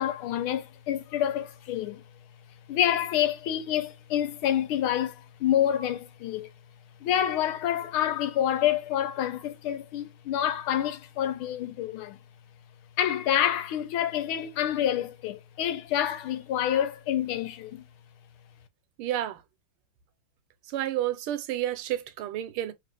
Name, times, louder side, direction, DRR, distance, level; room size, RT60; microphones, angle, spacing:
voice 1, 0.0-2.0 2.7-6.5 7.0-12.2 13.0-17.8, left 10 dB, 80° left, 1.5 m, -27 dB
voice 2, 19.0-19.4 20.7-22.7, right 12 dB, 85° right, 1.6 m, -30 dB
3.3 x 3.0 x 3.3 m
omnidirectional pair, 2.4 m